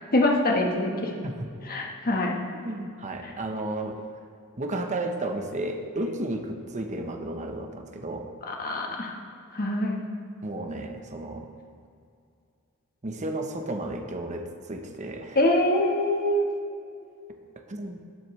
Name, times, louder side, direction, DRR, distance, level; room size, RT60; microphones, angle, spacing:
voice 1, 0.1-1.1 1.7-2.3 8.4-9.1 9.5-10.0 15.3-16.5, left 1 dB, 40° left, 1 dB, 1.4 m, -24 dB
voice 2, 2.6-4.0 4.6-8.3 10.4-11.5 13.0-15.4 17.6-18.0, right 1 dB, 35° right, 4 dB, 0.9 m, -33 dB
18.5 x 7.7 x 3.2 m, 2.4 s
head